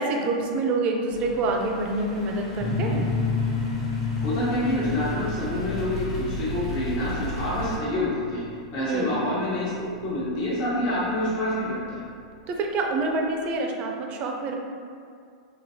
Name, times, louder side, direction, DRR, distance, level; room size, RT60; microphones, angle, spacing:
voice 1, 0.0-3.1 8.9-9.2 12.5-14.5, right 2 dB, 40° right, 2 dB, 0.4 m, -26 dB
sound 1, 1.1-7.8, equal, 70° left, 1.3 m, -36 dB
sound 2, 2.6-12.0, left 4 dB, 30° left, 0.6 m, -31 dB
voice 2, 4.2-8.5 8.7-12.0, left 1 dB, 55° left, -7 dB, 1.0 m, -27 dB
3.0 x 2.7 x 2.7 m, 2.3 s
hypercardioid pair, 105°, 3 cm